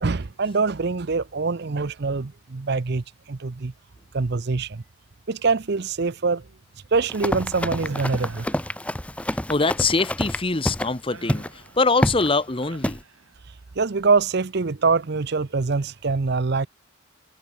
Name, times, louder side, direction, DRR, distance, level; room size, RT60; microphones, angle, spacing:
voice 1, 0.0-3.7 4.1-4.8 5.3-6.4 6.9-8.5 13.8-16.7, right 4 dB, 50° right, 0.6 m, -24 dB
Run, 7.0-10.9 11.3-11.5 12.0-12.3 12.8-13.0, left 1 dB, 5° left, 0.9 m, -27 dB
sound 1, 7.9-9.4 11.1-13.7, right 4 dB, 80° right, 3.6 m, -47 dB
voice 2, 9.5-13.0, left 3 dB, 25° left, 1.0 m, -23 dB
head